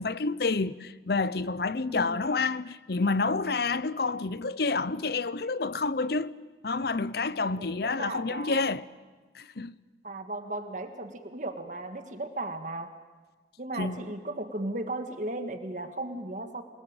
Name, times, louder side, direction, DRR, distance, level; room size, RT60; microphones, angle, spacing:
voice 1, 0.0-6.3 6.6-8.8 9.3-9.7 13.8-14.0, left 3 dB, 60° left, 0.8 m, -29 dB
voice 2, 1.9-2.2 7.6-8.6 10.0-12.9 13.6-16.6, right 2 dB, 45° right, 1.8 m, -36 dB
27.5 x 19.5 x 9.0 m
head